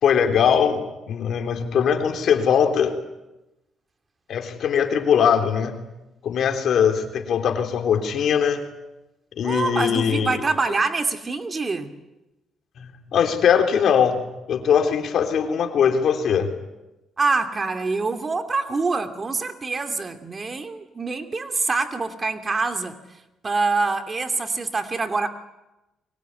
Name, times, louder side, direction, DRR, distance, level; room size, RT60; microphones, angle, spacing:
voice 1, 0.0-3.0 4.3-5.8 6.2-8.6 9.4-10.4 12.8-14.2 14.5-16.5, left 7 dB, 65° left, 6 dB, 3.6 m, -21 dB
voice 2, 9.4-11.9 17.2-23.0 23.4-25.3, right 3 dB, 30° right, 8 dB, 2.6 m, -25 dB
23.5 x 22.0 x 9.7 m, 0.97 s
cardioid pair, 90°, 0 cm